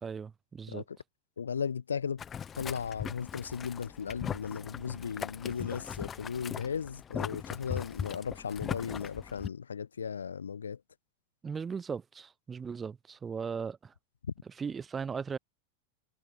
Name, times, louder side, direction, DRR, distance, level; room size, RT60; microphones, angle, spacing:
voice 1, 0.0-0.8 11.4-13.9 14.6-15.4, right 6 dB, 15° right, 1.5 m, -37 dB
voice 2, 1.4-2.2 2.6-10.8, left 6 dB, 70° left, 0.7 m, -36 dB
Boiling, 2.2-9.5, left 8 dB, 25° left, 1.7 m, -39 dB
figure-of-eight pair, 90°, 0 cm